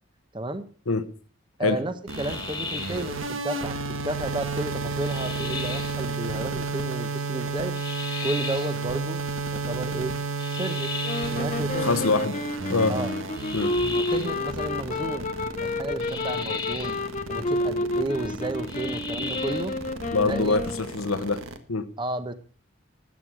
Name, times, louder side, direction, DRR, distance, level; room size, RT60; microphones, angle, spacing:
voice 1, 0.3-0.6 1.6-7.7 8.2-9.2 9.5-10.1 10.5-10.9 11.3-12.0 12.9-13.1 13.9-15.3 15.6-17.0 17.3-19.7 20.2-20.6 22.0-22.3, right 1 dB, 20° right, 0.9 m, -32 dB
sound 1, 2.1-3.1 5.0-6.0 7.7-8.8 10.4-11.5 13.3-14.4 16.0-17.0 18.7-19.7, left 4 dB, 20° left, 1.7 m, -36 dB
sound 2, 2.1-21.6, right 4 dB, 75° right, 1.5 m, -32 dB
sound 3, 11.0-21.0, left 2 dB, 35° left, 0.8 m, -30 dB
voice 2, 11.8-12.4 12.7-13.0 13.5-13.8 20.1-21.9, left 3 dB, 90° left, 1.0 m, -25 dB
13.5 x 9.1 x 6.1 m
head